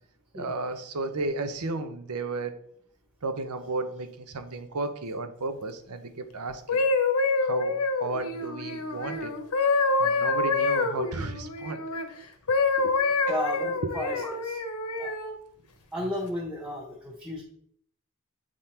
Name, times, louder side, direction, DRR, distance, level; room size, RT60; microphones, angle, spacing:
voice 1, 0.3-2.6 3.2-6.8 7.4-9.3 10.0-11.8 12.8-12.9 13.3-13.4 13.8-13.9 14.2-14.3, right 3 dB, 85° right, 9 dB, 0.8 m, -33 dB
sound 1, 6.5-12.1 12.5-15.4 16.0-16.3, left 3 dB, 75° left, 0.9 m, -26 dB
voice 2, 13.3-14.6 15.0-15.1 15.9-17.4, left 1 dB, 5° right, -5 dB, 1.1 m, -34 dB
8.1 x 3.7 x 4.3 m, 0.65 s
head